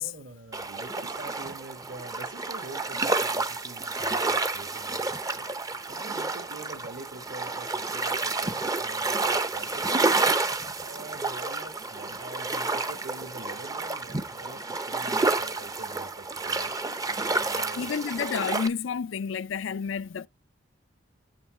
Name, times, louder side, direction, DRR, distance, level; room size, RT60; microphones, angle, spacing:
voice 1, 0.0-5.5 5.9-10.2 10.8-16.8 17.0-17.9, right 2 dB, 65° right, 1.6 m, -45 dB
sound 1, 0.5-18.7, right 3 dB, 20° right, 0.6 m, -30 dB
voice 2, 17.8-20.3, left 6 dB, 80° left, 0.4 m, -30 dB
8.4 x 3.2 x 6.4 m
head